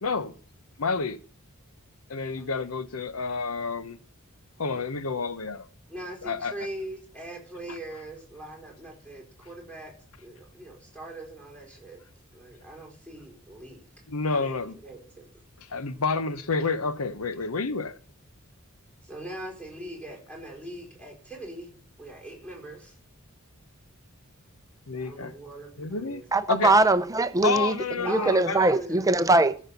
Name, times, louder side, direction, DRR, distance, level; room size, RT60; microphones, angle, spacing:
voice 1, 0.0-0.3 0.8-1.2 2.1-4.0 4.6-5.7 6.2-6.5 7.7-7.8 14.1-14.8 15.7-18.0 24.9-25.3 25.8-26.2 26.5-26.7 27.4-28.7, left 4 dB, 80° left, 0.8 m, -29 dB
voice 2, 2.4-2.8 5.9-9.9 10.2-12.0 12.3-13.8 14.3-15.3 19.0-21.7 22.0-23.0 25.0-26.2 28.0-29.1, right 1 dB, 5° left, 4.4 m, -41 dB
voice 3, 26.3-29.6, right 2 dB, 15° right, 0.7 m, -22 dB
14.5 x 6.4 x 7.0 m
head